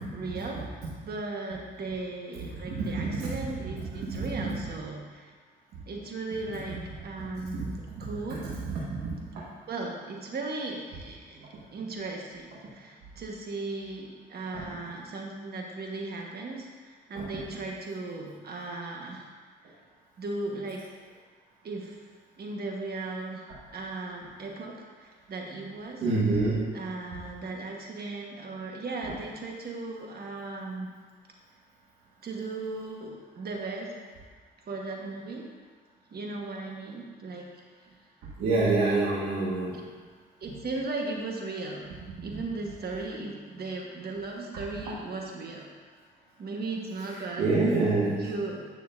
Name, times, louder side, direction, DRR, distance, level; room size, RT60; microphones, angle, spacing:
voice 1, 0.1-5.3 5.9-6.8 7.0-8.5 9.7-19.2 20.2-20.9 21.6-22.0 22.4-23.5 23.7-26.0 26.7-30.9 32.2-33.9 34.7-35.5 36.1-37.5 39.7-39.8 40.4-41.9 42.2-45.7 46.4-47.5 48.2-48.7, right 3 dB, 50° right, 0 dB, 1.4 m, -37 dB
voice 2, 2.7-3.3 4.2-4.5 7.5-7.7 8.0-8.1 8.4-9.1 14.5-14.6 17.1-17.2 26.0-26.6 38.4-39.8 47.4-48.2, right 3 dB, 90° right, -8 dB, 1.6 m, -26 dB
9.6 x 6.4 x 2.6 m, 1.5 s
cardioid pair, 90°, 20 cm